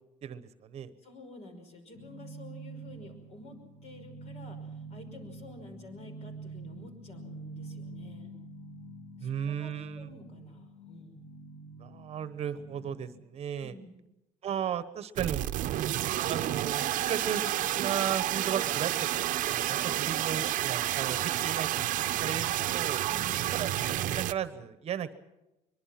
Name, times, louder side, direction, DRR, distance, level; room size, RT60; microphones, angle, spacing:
voice 1, 0.2-0.9 9.2-10.1 11.8-13.7 14.4-15.4 16.3-17.4 17.7-23.0 23.5-25.1, right 9 dB, 45° right, 13 dB, 1.1 m, -35 dB
voice 2, 1.0-3.6 3.8-8.3 9.2-11.3 13.6-14.0 19.8-20.1 23.1-23.4, left 1 dB, 45° left, 6 dB, 5.4 m, -50 dB
sound 1, 1.9-13.2, right 2 dB, 80° left, 2.6 m, -46 dB
sound 2, 15.2-24.3, right 13 dB, 65° right, 0.9 m, -30 dB
23.0 x 22.5 x 5.9 m, 0.94 s
cardioid pair, 155°, 14 cm